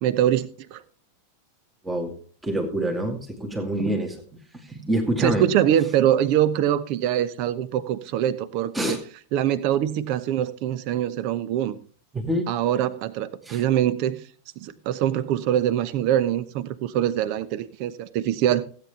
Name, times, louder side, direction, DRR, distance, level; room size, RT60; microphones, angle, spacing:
voice 1, 0.0-0.8 5.2-9.0 9.3-11.8 12.5-14.2 14.6-18.6, right 11 dB, 45° right, 16 dB, 0.8 m, -23 dB
voice 2, 1.8-2.1 2.4-4.2 4.7-5.4 8.7-9.0 12.1-12.5 13.5-13.6, right 1 dB, 10° right, 3 dB, 2.0 m, -26 dB
16.0 x 8.7 x 3.4 m, 0.43 s
figure-of-eight pair, 90°, 0 cm